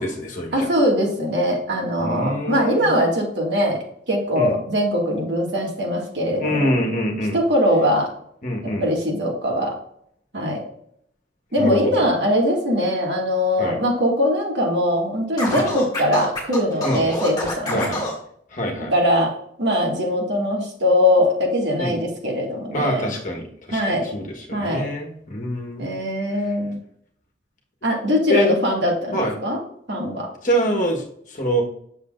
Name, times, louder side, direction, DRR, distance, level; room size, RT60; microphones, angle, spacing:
voice 1, 0.0-0.7 2.0-2.9 4.3-4.6 6.4-7.4 8.4-8.8 11.6-12.0 13.6-13.8 15.5-15.7 16.8-17.0 17.7-18.0 18.5-18.9 21.8-21.9 22.7-25.9 28.3-28.5 29.1-29.4 30.4-31.6, equal, 40° left, 0 dB, 1.4 m, -25 dB
voice 2, 0.5-3.8 4.1-6.7 7.3-8.1 8.6-9.8 10.3-10.6 11.5-18.0 18.9-19.3 19.6-23.1 23.7-24.1 24.5-24.9 25.8-26.8 27.8-29.6 29.9-30.3, equal, 65° right, -1 dB, 2.2 m, -21 dB
Scratching (performance technique), 15.4-18.2, left 1 dB, 20° left, 2.2 m, -27 dB
8.4 x 6.6 x 2.6 m, 0.68 s
head